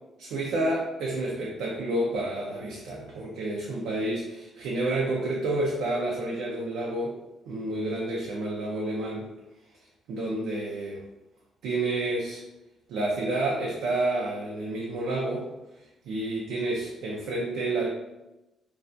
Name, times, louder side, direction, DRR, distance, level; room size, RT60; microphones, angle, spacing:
voice 1, 0.2-7.2 7.5-9.3 10.1-11.0 11.6-12.4 12.9-15.4 16.1-17.9, right 2 dB, 90° right, -3 dB, 0.4 m, -29 dB
2.3 x 2.2 x 2.5 m, 0.97 s
cardioid pair, 90°, 0 cm